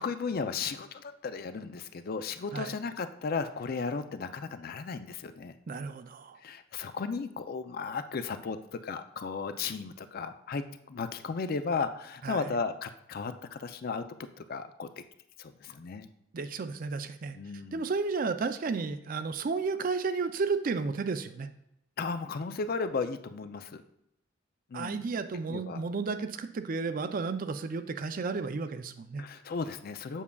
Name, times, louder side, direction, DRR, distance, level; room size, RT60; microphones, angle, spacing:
voice 1, 0.0-5.5 6.4-10.6 10.9-14.0 14.4-15.0 15.4-16.1 17.3-17.8 22.0-23.8 24.7-25.1 25.5-25.8 29.2-30.2, left 4 dB, 50° left, 10 dB, 0.4 m, -35 dB
voice 2, 5.7-6.4 12.2-12.5 16.3-17.4 17.7-21.5 24.7-29.2, right 4 dB, 45° right, 10 dB, 0.4 m, -32 dB
7.3 x 6.8 x 2.3 m, 0.79 s
head